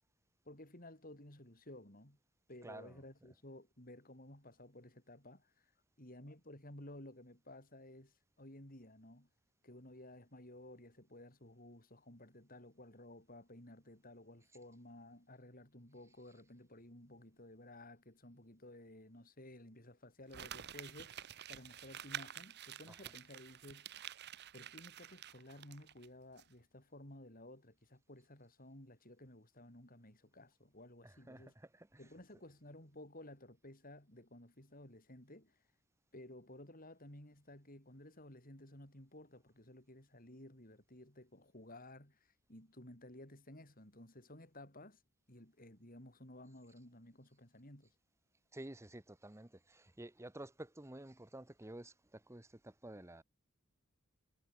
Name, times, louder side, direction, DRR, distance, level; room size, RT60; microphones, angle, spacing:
voice 1, 0.4-2.2 2.5-5.7 6.0-9.3 9.6-21.2 21.5-23.9 24.5-31.5 32.0-35.6 36.1-45.0 45.3-47.9, left 1 dB, 45° left, 7.6 m, -55 dB
voice 2, 2.6-3.0 22.9-23.0 31.0-32.0 48.5-53.2, right 1 dB, 15° right, 1.0 m, -51 dB
Crumpling crinkling, 20.3-26.1 26.4-26.5, right 10 dB, 55° right, 1.0 m, -49 dB
head